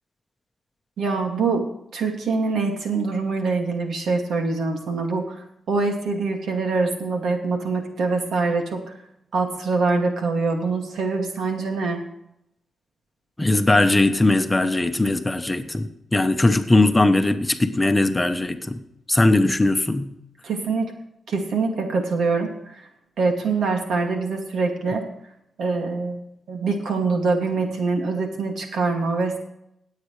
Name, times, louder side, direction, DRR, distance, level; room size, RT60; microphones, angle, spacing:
voice 1, 1.0-1.6 1.9-8.8 9.3-12.0 20.4-20.9 21.3-22.8 23.2-25.0 25.6-26.2 26.5-29.4, right 4 dB, 85° right, 3 dB, 2.3 m, -24 dB
voice 2, 13.4-18.8 19.1-20.1, left 2 dB, 15° left, 8 dB, 0.9 m, -19 dB
18.0 x 8.4 x 3.3 m, 0.79 s
cardioid pair, 105°, 0 cm